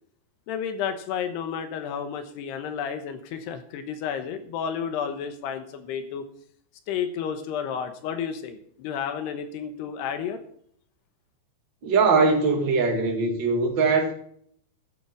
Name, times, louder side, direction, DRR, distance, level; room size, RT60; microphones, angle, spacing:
voice 1, 0.5-6.2 6.9-10.4, left 7 dB, 80° left, 3.2 m, -31 dB
voice 2, 11.8-14.1, right 4 dB, 35° right, 2.0 m, -21 dB
14.5 x 8.6 x 4.6 m
omnidirectional pair, 4.8 m